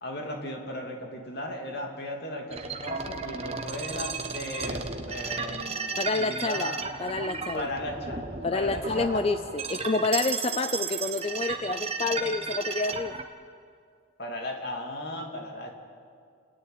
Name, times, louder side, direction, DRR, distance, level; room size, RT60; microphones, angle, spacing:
voice 1, 0.0-6.8 7.5-8.2 8.5-9.2 14.2-15.8, left 1 dB, 55° left, 1 dB, 2.8 m, -36 dB
sound 1, 2.5-13.3, right 4 dB, 30° right, 1.0 m, -34 dB
voice 2, 6.0-6.7 7.0-7.7 8.4-13.1, left 3 dB, 30° left, 10 dB, 0.4 m, -28 dB
29.0 x 9.8 x 9.8 m, 2.2 s
head